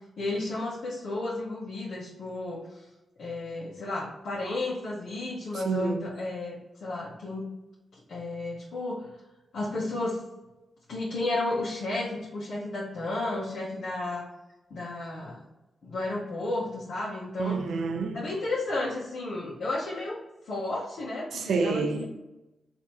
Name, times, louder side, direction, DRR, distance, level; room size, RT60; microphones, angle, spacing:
voice 1, 0.2-2.6 3.2-7.5 7.9-9.0 9.5-10.2 10.9-14.3 14.7-15.4 15.8-17.6 18.1-20.1 20.4-22.1, left 2 dB, 70° left, 1.3 m, -32 dB
voice 2, 5.6-6.1 17.4-18.2 21.3-22.1, right 4 dB, 80° right, 0.6 m, -28 dB
4.1 x 2.9 x 4.3 m
cardioid pair, 70°, 0 cm